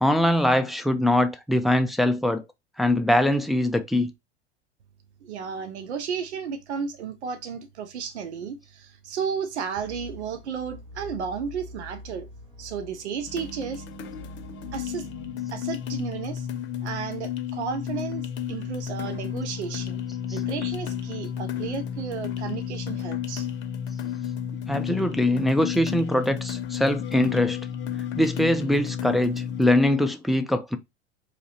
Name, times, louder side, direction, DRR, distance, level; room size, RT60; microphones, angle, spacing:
voice 1, 0.0-2.4 2.8-4.1 24.7-27.6 28.2-30.8, left 1 dB, ahead, 0.3 m, -22 dB
voice 2, 5.2-12.3 12.6-13.8 14.7-15.1 15.5-16.5 16.8-20.0 20.3-23.6, right 6 dB, 85° right, 0.5 m, -33 dB
sound 1, 9.8-15.3, left 1 dB, 70° right, 1.6 m, -44 dB
sound 2, 13.3-29.7, left 9 dB, 35° left, 0.7 m, -32 dB
3.8 x 2.8 x 2.8 m
hypercardioid pair, 80°, 33 cm